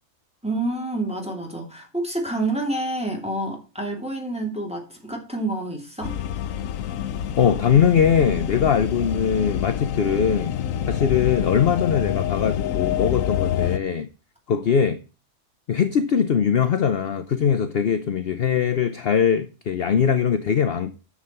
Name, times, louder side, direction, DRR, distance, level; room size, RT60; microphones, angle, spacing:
voice 1, 0.4-6.1, right 2 dB, 5° right, 2.8 m, -28 dB
sound 1, 6.0-13.8, left 10 dB, 90° left, 1.0 m, -27 dB
voice 2, 7.4-10.6 10.9-14.1 14.5-15.0 15.7-21.0, left 7 dB, 55° left, 0.9 m, -21 dB
10.0 x 7.2 x 4.4 m
omnidirectional pair, 1.4 m